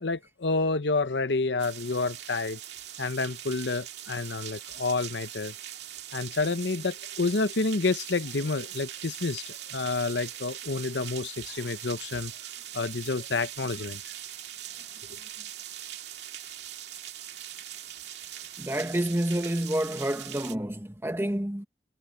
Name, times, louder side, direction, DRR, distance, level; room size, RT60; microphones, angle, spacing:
voice 1, 0.0-2.6 3.0-5.5 6.1-12.3 12.7-14.1, left 3 dB, 75° left, 0.9 m, -29 dB
sound 1, 1.6-20.6, right 11 dB, 70° right, 2.2 m, -41 dB
voice 2, 18.6-21.7, right 1 dB, 15° right, 1.4 m, -29 dB
head